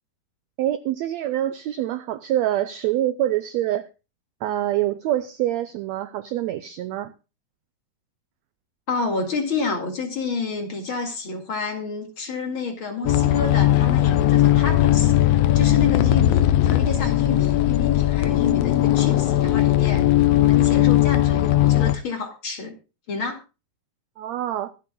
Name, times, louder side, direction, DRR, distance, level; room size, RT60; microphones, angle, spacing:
voice 1, 0.6-3.9 4.4-7.1 24.2-24.7, right 13 dB, 85° right, 1.5 m, -25 dB
voice 2, 8.9-20.1 20.4-22.8 23.1-23.4, left 4 dB, 40° left, 2.6 m, -29 dB
sound 1, 13.1-22.0, left 13 dB, 85° left, 1.4 m, -18 dB
24.0 x 8.3 x 2.3 m
omnidirectional pair, 3.8 m